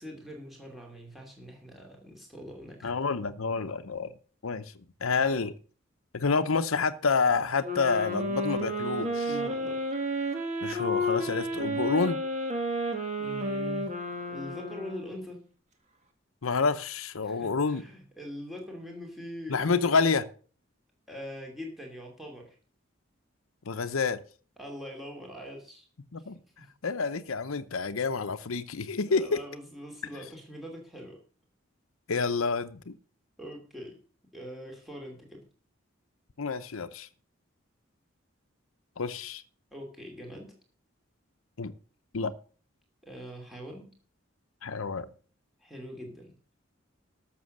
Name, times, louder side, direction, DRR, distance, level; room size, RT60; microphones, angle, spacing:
voice 1, 0.0-2.9 9.2-9.8 13.2-13.8 14.3-15.4 17.2-20.1 21.1-22.6 24.6-25.9 26.6-26.7 29.1-31.2 33.4-34.0 34.3-35.4 39.7-40.5 43.0-43.9 45.6-46.3, equal, ahead, 2.7 m, -43 dB
voice 2, 2.8-4.1 4.4-4.7 5.0-5.5 6.1-9.3 10.6-12.2 16.4-17.8 19.5-20.2 23.7-24.2 26.1-26.4 26.8-29.4 32.1-33.0 36.4-37.1 39.0-39.4 41.6-41.7 42.1-42.3 44.6-45.1, left 4 dB, 85° left, 0.8 m, -28 dB
sound 1, 7.6-15.3, equal, 35° right, 1.8 m, -31 dB
13.0 x 6.9 x 6.5 m
head